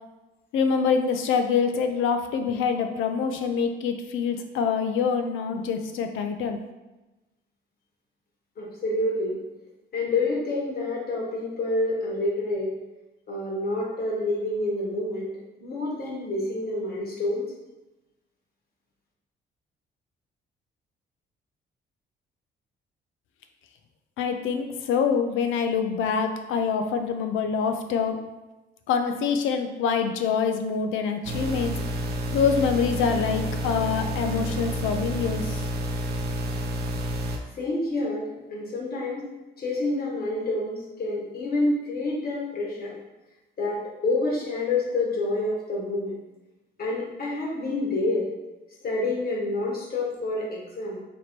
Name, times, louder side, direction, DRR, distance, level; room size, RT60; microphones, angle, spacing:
voice 1, 0.5-6.6 24.2-28.2 28.9-31.7 32.3-35.6, left 6 dB, 85° left, 6 dB, 0.4 m, -25 dB
voice 2, 8.6-9.4 9.9-12.7 13.3-15.3 15.6-17.5 37.5-39.2 39.6-43.0 43.6-46.2 46.8-48.3 48.8-51.0, left 2 dB, 50° left, -3 dB, 1.1 m, -28 dB
sound 1, 31.2-37.4, equal, 55° right, 0.6 m, -29 dB
3.0 x 2.6 x 4.3 m, 1.1 s
cardioid pair, 90°, 20 cm